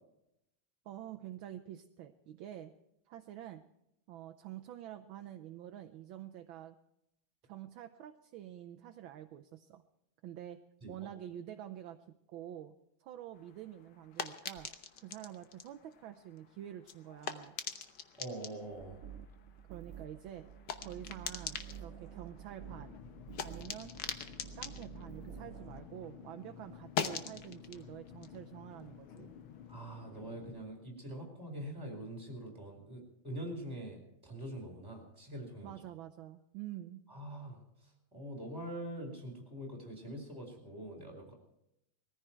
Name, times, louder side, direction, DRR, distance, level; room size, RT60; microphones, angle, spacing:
voice 1, 0.8-2.7 3.1-3.6 4.1-6.8 7.4-9.8 10.2-10.6 10.9-12.0 12.3-12.7 13.0-14.7 15.0-17.6 19.7-20.5 20.8-22.9 23.4-24.0 24.6-29.3 35.6-37.0, right 11 dB, 75° right, 7 dB, 1.5 m, -47 dB
sound 1, 13.3-26.1 26.4-29.6, left 7 dB, 60° left, 1.5 m, -44 dB
voice 2, 18.2-19.0 29.7-35.8 37.1-41.3, right 1 dB, 5° right, 1 dB, 4.0 m, -44 dB
sound 2, 18.7-25.8, right 8 dB, 60° right, 0.9 m, -50 dB
sound 3, 22.6-30.6, left 9 dB, 80° left, 1.9 m, -52 dB
20.5 x 14.5 x 4.5 m, 0.83 s
omnidirectional pair, 2.2 m